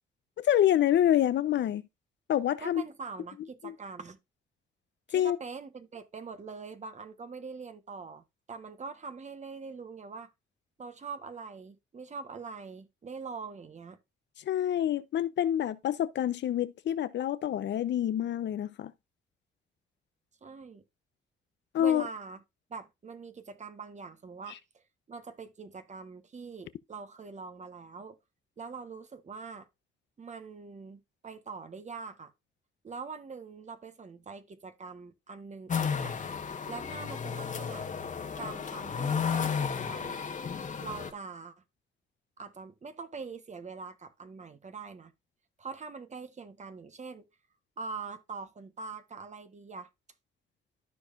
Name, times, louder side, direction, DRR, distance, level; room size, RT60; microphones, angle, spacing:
voice 1, 0.4-1.8 2.3-2.8 3.6-3.7 5.1-5.4 14.5-18.9 21.7-22.0, left 11 dB, 65° left, 0.8 m, -27 dB
voice 2, 2.6-4.2 5.1-8.2 8.5-10.3 10.8-14.0 20.4-20.8 21.8-22.4 22.7-28.2 28.6-29.7 30.2-32.3 32.8-36.2 36.7-37.9 38.4-40.3 40.8-41.5 42.4-45.1 45.6-47.3 47.8-49.9, right 4 dB, 35° right, 1.3 m, -43 dB
sound 1, 35.7-41.1, left 6 dB, 40° left, 1.3 m, -33 dB
13.5 x 4.8 x 2.5 m
cardioid pair, 90°, 20 cm